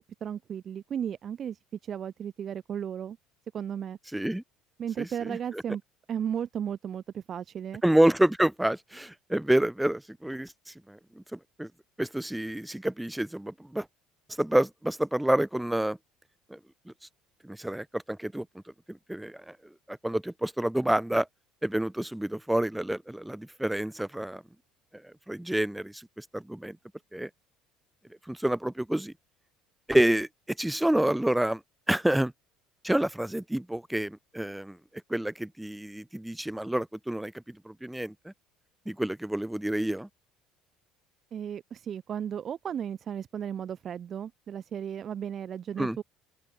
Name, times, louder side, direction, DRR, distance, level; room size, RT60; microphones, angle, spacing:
voice 1, 0.0-3.2 3.5-4.0 4.8-5.8 6.1-7.8 41.3-46.0, right 8 dB, 30° right, 3.7 m, -35 dB
voice 2, 4.1-4.4 5.0-5.6 7.8-11.7 12.0-13.9 14.4-16.0 16.5-16.6 17.4-18.5 18.9-19.6 19.9-21.3 21.6-24.4 25.0-26.8 27.1-27.3 28.3-29.1 29.9-30.3 30.6-31.6 31.9-32.3 32.8-34.8 35.1-38.3 38.9-40.1 45.8-46.0, right 1 dB, 5° right, 7.2 m, -28 dB
open air
cardioid pair, 175°, 0 cm